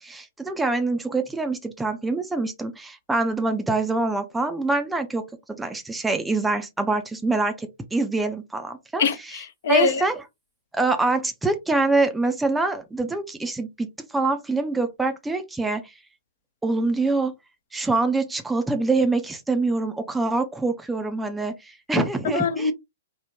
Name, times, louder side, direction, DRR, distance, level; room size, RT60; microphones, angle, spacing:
voice 1, 0.0-5.2 5.6-9.0 9.7-10.1 10.7-15.8 16.6-17.3 17.7-22.7, right 3 dB, 5° right, 0.4 m, -25 dB
voice 2, 9.0-10.0 22.0-22.7, left 5 dB, 50° left, 0.5 m, -23 dB
3.6 x 2.1 x 2.8 m
figure-of-eight pair, 110°, 0 cm